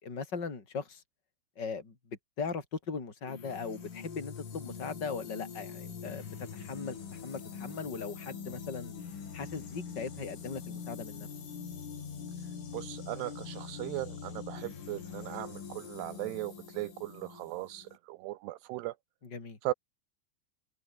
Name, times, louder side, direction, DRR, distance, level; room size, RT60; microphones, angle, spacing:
voice 1, 0.0-1.0 1.6-1.9 2.4-8.9 9.3-11.3 19.2-19.6, left 5 dB, 20° left, 4.8 m, -39 dB
sound 1, 3.3-18.0, left 6 dB, 80° left, 8.2 m, -44 dB
voice 2, 12.7-18.9 19.6-19.7, right 17 dB, 90° right, 2.3 m, -38 dB
omnidirectional pair, 5.6 m